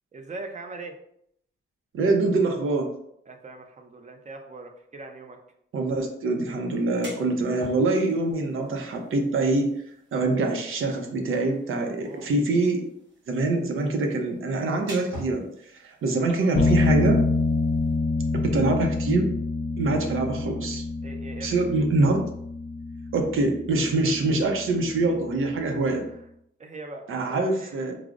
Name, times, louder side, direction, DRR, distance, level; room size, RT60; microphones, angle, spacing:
voice 1, 0.1-1.0 3.3-5.4 12.0-12.3 16.1-16.5 18.6-18.8 21.0-21.6 25.9-26.0 26.6-27.3 27.6-27.8, right 3 dB, 35° right, 4 dB, 0.5 m, -41 dB
voice 2, 1.9-2.9 5.7-9.7 10.1-12.9 13.3-17.2 18.4-19.3 19.8-20.9 21.4-22.3 23.1-26.0 27.1-28.0, right 2 dB, 90° right, 3 dB, 0.6 m, -24 dB
sound 1, 6.7-18.0, equal, 65° right, 1.0 m, -47 dB
sound 2, 16.5-26.0, left 3 dB, 50° left, 0.4 m, -27 dB
4.7 x 2.0 x 2.4 m, 0.73 s
wide cardioid pair, 110°, 20 cm